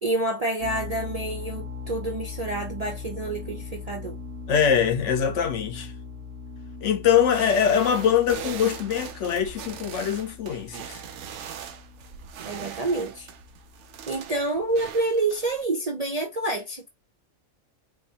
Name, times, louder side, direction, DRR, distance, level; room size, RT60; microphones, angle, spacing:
voice 1, 0.0-4.2 12.4-13.3 14.1-16.9, right 2 dB, 45° right, 0.5 m, -28 dB
sound 1, 0.6-14.2, left 5 dB, 90° right, 1.4 m, -40 dB
voice 2, 4.5-5.9 6.8-11.0, left 8 dB, 65° left, 1.0 m, -23 dB
sound 2, 7.1-15.6, right 9 dB, 70° right, 0.8 m, -41 dB
4.7 x 2.6 x 2.7 m
omnidirectional pair, 1.4 m